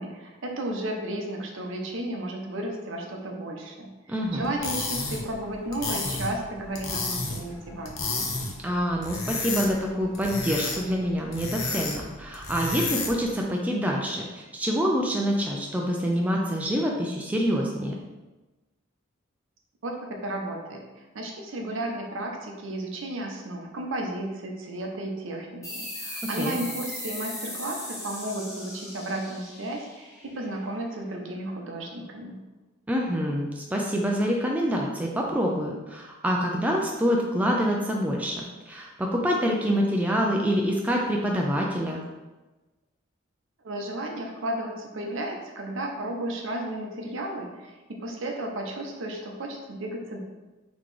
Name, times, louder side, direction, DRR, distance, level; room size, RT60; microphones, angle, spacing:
voice 1, 0.0-8.3 19.8-20.0 20.2-20.8 21.1-32.4 43.6-50.2, right 1 dB, 70° right, 2 dB, 0.6 m, -33 dB
voice 2, 4.1-4.5 8.6-18.0 26.4-26.6 32.9-38.4 38.7-42.0, equal, 5° right, -1 dB, 0.3 m, -26 dB
sound 1, 4.4-13.3, left 3 dB, 80° left, 0.7 m, -32 dB
sound 2, 25.6-30.8, left 1 dB, 15° left, 1.0 m, -38 dB
4.0 x 2.9 x 3.2 m, 1.1 s
head